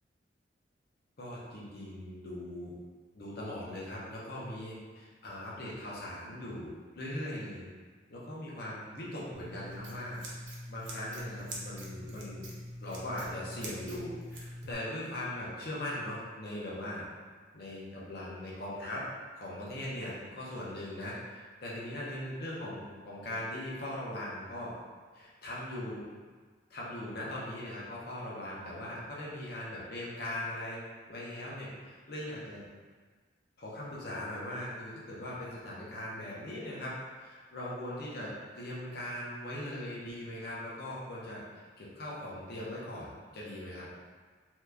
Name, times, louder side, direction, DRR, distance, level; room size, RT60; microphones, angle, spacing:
voice 1, 1.2-2.7 3.1-7.6 8.1-10.2 10.7-12.4 12.8-17.1 17.5-19.0 19.3-24.7 25.1-26.0 26.7-30.8 31.1-32.7 33.6-44.0, left 1 dB, 60° left, -6 dB, 0.8 m, -40 dB
Scissors, 9.3-14.7, equal, 75° right, 0.6 m, -43 dB
2.8 x 2.3 x 3.4 m, 1.5 s
head